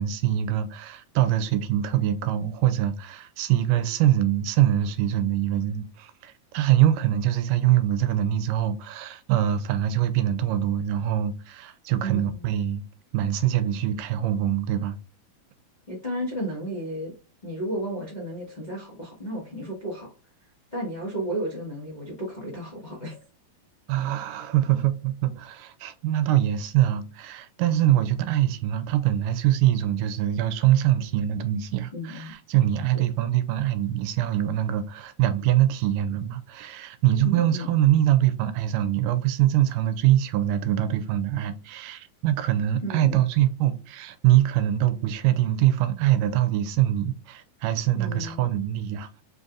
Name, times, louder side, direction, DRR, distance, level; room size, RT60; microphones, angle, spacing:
voice 1, 0.0-12.8 13.1-15.0 23.9-49.1, right 12 dB, 80° right, 2.1 m, -23 dB
voice 2, 12.0-12.5 15.9-17.1 17.4-20.1 20.7-23.2 31.9-32.3 32.9-33.0 37.2-37.7 42.8-43.2 47.9-48.5, right 1 dB, 50° left, 0.5 m, -33 dB
4.7 x 3.9 x 2.4 m
omnidirectional pair, 3.8 m